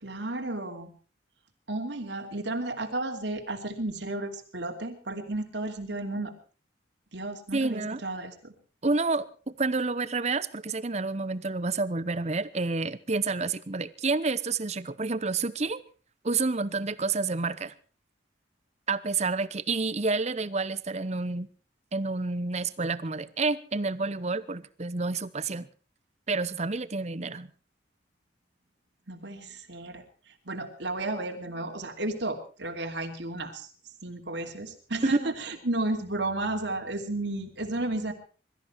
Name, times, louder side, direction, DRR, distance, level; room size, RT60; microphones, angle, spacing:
voice 1, 0.0-0.9 1.7-6.3 7.1-8.5 29.1-30.0 30.4-33.7 34.0-38.1, right 2 dB, 70° right, 4 dB, 2.8 m, -33 dB
voice 2, 7.5-8.0 8.8-15.8 16.2-17.7 18.9-21.5 21.9-25.7 26.3-27.5 35.0-35.3, right 3 dB, 35° right, 16 dB, 0.8 m, -29 dB
22.5 x 13.5 x 4.5 m, 0.38 s
head